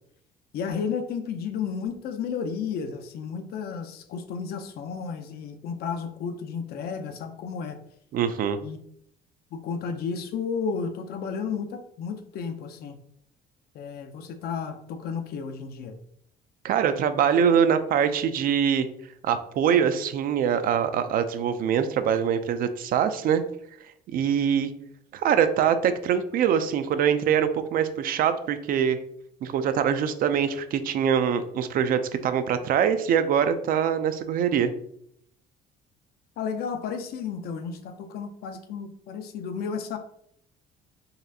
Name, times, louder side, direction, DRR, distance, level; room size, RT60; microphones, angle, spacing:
voice 1, 0.5-7.8 8.6-8.8 9.5-13.0 13.7-15.9 36.4-40.0, left 6 dB, 65° left, 8 dB, 0.5 m, -32 dB
voice 2, 8.1-8.6 16.6-18.9 19.2-23.4 24.1-24.7 25.1-29.0 29.4-34.7, right 8 dB, 60° right, 10 dB, 0.4 m, -23 dB
4.0 x 2.5 x 2.7 m, 0.69 s
cardioid pair, 110°, 17 cm